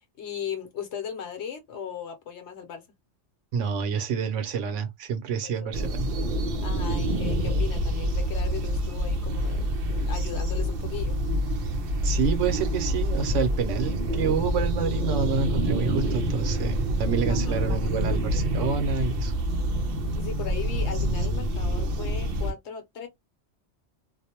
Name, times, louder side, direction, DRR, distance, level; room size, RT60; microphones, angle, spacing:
voice 1, 0.0-2.8 5.4-5.8 6.6-11.2 17.3-17.7 20.2-23.1, left 8 dB, 70° left, 1.0 m, -37 dB
voice 2, 3.5-6.1 12.0-19.3, right 6 dB, 90° right, 1.0 m, -28 dB
sound 1, 5.7-22.5, equal, 60° right, 0.7 m, -27 dB
2.5 x 2.0 x 2.8 m
omnidirectional pair, 1.2 m